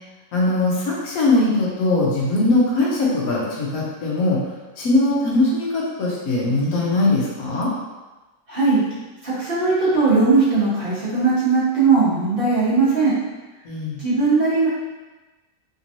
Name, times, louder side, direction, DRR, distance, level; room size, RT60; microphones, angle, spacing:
voice 1, 0.3-4.4 4.8-7.7 13.6-14.0, left 2 dB, 75° left, -4 dB, 1.3 m, -20 dB
voice 2, 8.5-8.8 9.2-13.1 14.0-14.7, right 4 dB, 40° right, -11 dB, 1.2 m, -18 dB
3.4 x 3.0 x 2.6 m, 1.2 s
omnidirectional pair, 1.5 m